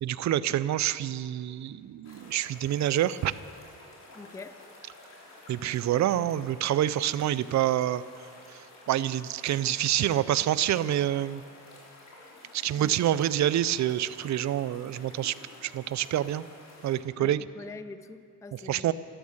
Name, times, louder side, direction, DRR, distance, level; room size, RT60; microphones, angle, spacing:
voice 1, 0.0-3.3 5.5-8.0 8.5-11.4 12.5-15.3 15.6-16.5 16.8-17.4 18.5-18.9, right 12 dB, 50° right, 17 dB, 0.5 m, -27 dB
sound 1, 2.0-17.0, left 2 dB, 45° left, 3.7 m, -51 dB
voice 2, 4.1-4.6 12.7-12.9 17.2-18.9, left 3 dB, 10° left, 12 dB, 0.4 m, -44 dB
13.0 x 12.5 x 7.3 m, 2.4 s
cardioid pair, 115°, 37 cm